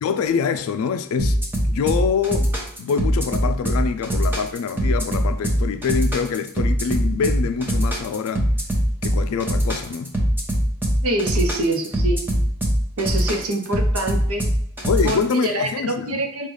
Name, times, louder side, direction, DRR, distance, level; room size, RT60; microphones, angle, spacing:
voice 1, 0.0-2.5 2.8-8.5 9.0-10.1 14.9-16.2, left 6 dB, 80° left, 0.3 m, -25 dB
sound 1, 1.2-15.4, equal, 10° right, 0.7 m, -22 dB
voice 2, 11.0-12.2 13.0-14.5 15.0-16.5, right 1 dB, 85° right, 0.8 m, -25 dB
5.3 x 2.4 x 3.1 m
head